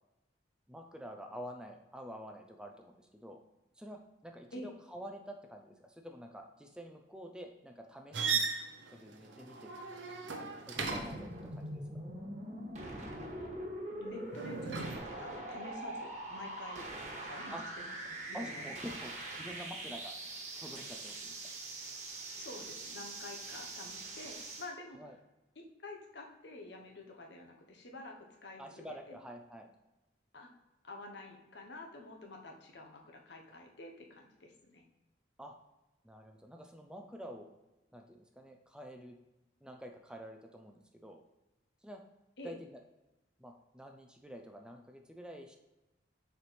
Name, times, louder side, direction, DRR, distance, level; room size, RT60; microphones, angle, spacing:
voice 1, 0.7-3.4 3.8-8.5 8.9-9.7 10.4-11.8 17.5-17.6 18.3-21.4 24.9-25.2 28.6-29.7 35.4-35.6 36.0-37.5 37.9-39.2 39.6-41.2 41.8-42.0 42.4-42.8 43.4-45.6, equal, 5° right, 3 dB, 0.5 m, -48 dB
sound 1, 8.1-11.3 14.3-15.0, right 5 dB, 85° right, 0.8 m, -36 dB
sound 2, 10.8-24.7, right 2 dB, 40° right, 1.3 m, -43 dB
voice 2, 13.9-19.0 22.4-25.0 25.6-29.2 30.3-30.5 30.8-34.8 42.4-42.6, left 2 dB, 70° left, 1 dB, 1.1 m, -49 dB
6.7 x 4.6 x 3.3 m, 1.0 s
head